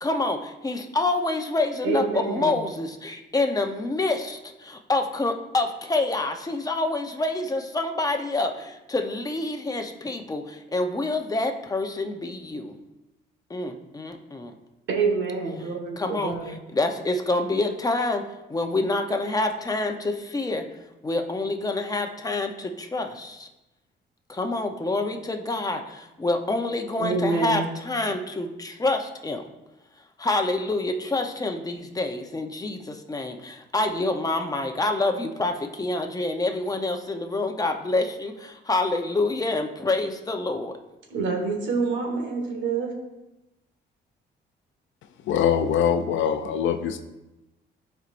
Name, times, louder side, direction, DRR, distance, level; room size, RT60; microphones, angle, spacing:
voice 1, 0.0-12.7 13.5-14.5 16.0-20.7 21.0-23.5 24.3-29.4 30.2-40.7, left 2 dB, 20° left, 4 dB, 0.8 m, -27 dB
voice 2, 1.8-2.6 14.9-16.5 27.0-27.7 41.1-42.9, right 4 dB, 70° right, 1 dB, 1.7 m, -27 dB
voice 3, 45.3-47.0, left 8 dB, 75° left, 8 dB, 0.5 m, -23 dB
11.0 x 4.6 x 2.6 m, 0.98 s
cardioid pair, 90°, 20 cm